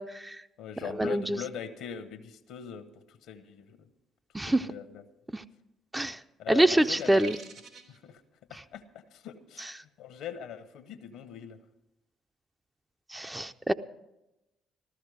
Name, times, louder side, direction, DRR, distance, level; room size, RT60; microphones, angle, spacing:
voice 1, 0.0-0.4 1.0-1.4 4.3-4.7 5.3-5.4 5.9-6.2 6.5-7.4 13.1-13.7, right 1 dB, 15° right, 9 dB, 0.6 m, -25 dB
voice 2, 0.6-3.9 4.4-5.0 6.4-7.2 7.9-8.2 8.5-11.6, left 8 dB, 75° left, 11 dB, 1.0 m, -41 dB
sound 1, 6.6-8.0, right 4 dB, 70° right, 2.5 m, -46 dB
14.5 x 13.5 x 4.9 m, 0.92 s
hypercardioid pair, 50°, 0 cm